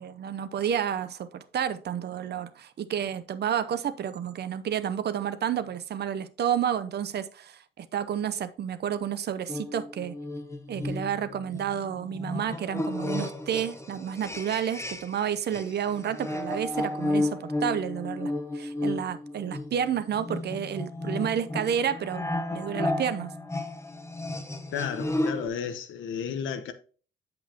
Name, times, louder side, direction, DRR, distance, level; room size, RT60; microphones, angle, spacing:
voice 1, 0.0-10.2 10.7-23.4, right 9 dB, 55° right, 0.8 m, -30 dB
sound 1, 9.5-15.2 15.5-25.5, left 1 dB, 15° left, 1.3 m, -33 dB
voice 2, 24.7-26.7, left 7 dB, 80° left, 1.1 m, -33 dB
7.8 x 7.3 x 2.9 m
cardioid pair, 90°, 20 cm